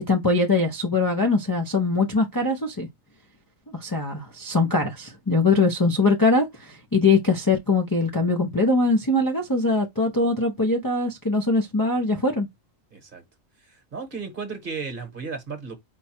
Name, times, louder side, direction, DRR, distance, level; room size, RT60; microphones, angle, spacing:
voice 1, 0.1-2.9 3.7-12.5, left 3 dB, 25° left, 0.5 m, -22 dB
voice 2, 12.9-13.2 13.7-15.7, right 5 dB, 45° right, 1.2 m, -34 dB
4.6 x 2.3 x 4.2 m
omnidirectional pair, 1.4 m